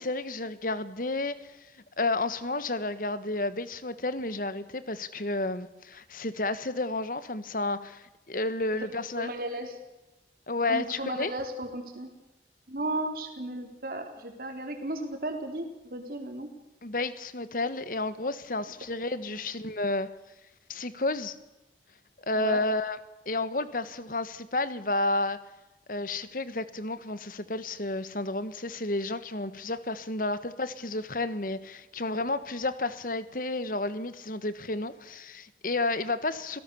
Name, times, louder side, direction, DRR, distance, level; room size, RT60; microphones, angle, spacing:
voice 1, 0.0-1.4 2.0-9.3 10.5-11.3 16.8-20.1 20.7-21.4 22.3-23.0 23.3-25.4 25.9-36.6, left 2 dB, 50° left, 1.4 m, -31 dB
voice 2, 9.2-9.8 10.7-12.1 12.7-16.5 19.3-19.4 22.3-22.6, right 1 dB, 55° right, 3.8 m, -35 dB
26.5 x 17.5 x 7.1 m
head